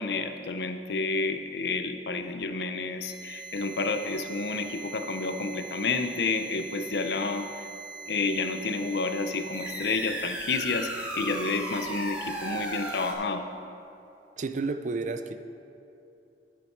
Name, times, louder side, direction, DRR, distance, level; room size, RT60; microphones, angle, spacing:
voice 1, 0.0-7.7 8.1-13.4, left 3 dB, 65° left, 7 dB, 0.6 m, -30 dB
sound 1, 3.0-13.1, right 2 dB, 10° right, 1.4 m, -38 dB
voice 2, 14.4-15.4, right 3 dB, 45° right, 10 dB, 0.4 m, -31 dB
9.5 x 9.4 x 4.5 m, 2.7 s
head